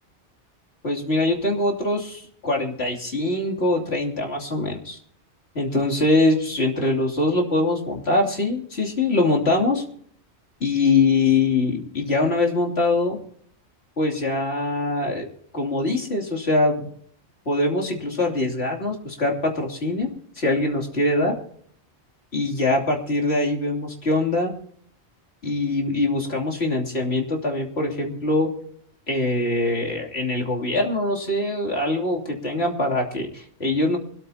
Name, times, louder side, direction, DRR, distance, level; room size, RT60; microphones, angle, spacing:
voice 1, 0.8-5.0 5.5-9.8 10.6-13.2 14.0-15.3 15.5-16.9 17.4-20.1 20.4-21.3 22.3-24.5 25.4-28.5 29.1-34.0, left 2 dB, 65° left, -1 dB, 3.3 m, -23 dB
24.5 x 13.5 x 2.8 m, 0.63 s
omnidirectional pair, 1.2 m